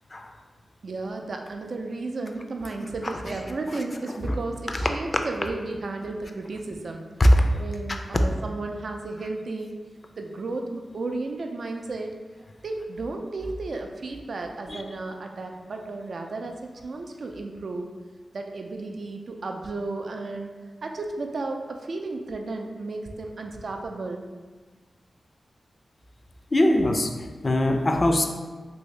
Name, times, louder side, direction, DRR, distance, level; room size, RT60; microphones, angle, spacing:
voice 1, 0.8-7.1 7.6-9.8 10.2-12.2 12.6-17.9 18.3-20.5 20.8-24.3, right 3 dB, 70° right, 3 dB, 0.3 m, -33 dB
voice 2, 26.5-27.1 27.4-28.2, left 1 dB, 40° left, 4 dB, 0.4 m, -21 dB
2.8 x 2.6 x 3.1 m, 1.4 s
cardioid pair, 45°, 0 cm